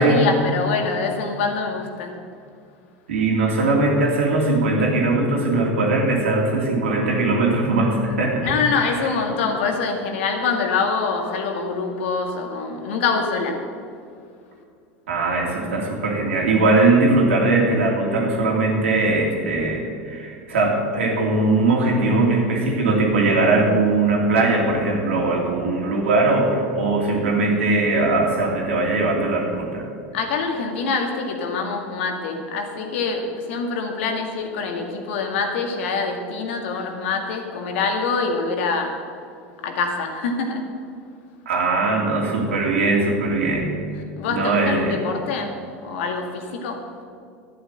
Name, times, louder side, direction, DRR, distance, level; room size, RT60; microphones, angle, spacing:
voice 1, 0.0-2.1 8.4-13.7 30.1-39.0 39.6-40.7 44.2-46.8, left 4 dB, 75° left, 3 dB, 2.0 m, -25 dB
voice 2, 3.1-8.4 15.1-29.8 41.4-43.7 44.3-44.9, right 2 dB, 90° right, -1 dB, 3.0 m, -20 dB
11.5 x 9.4 x 7.7 m, 2.3 s
hypercardioid pair, 95°, 7 cm